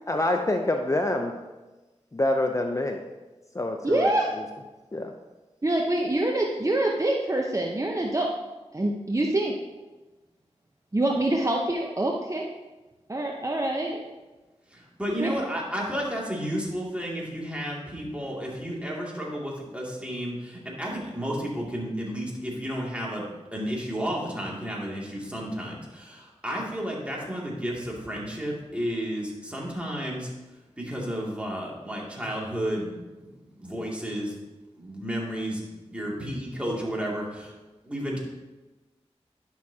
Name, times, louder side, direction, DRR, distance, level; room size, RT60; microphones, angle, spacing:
voice 1, 0.1-1.3 2.1-3.0 3.5-4.1 4.4-4.5 4.9-5.1, left 1 dB, 25° left, 3 dB, 0.6 m, -26 dB
voice 2, 3.8-4.3 5.6-8.3 8.7-9.6 10.9-12.4 13.1-14.0 15.2-15.3, right 1 dB, 30° right, 0 dB, 0.8 m, -25 dB
voice 3, 14.7-23.2 23.5-30.3 30.8-32.9 33.2-33.3 33.6-34.4 34.8-35.6 35.9-37.5 37.8-38.2, equal, 10° right, -4 dB, 2.5 m, -32 dB
11.0 x 6.0 x 2.8 m, 1.1 s
cardioid pair, 45°, 12 cm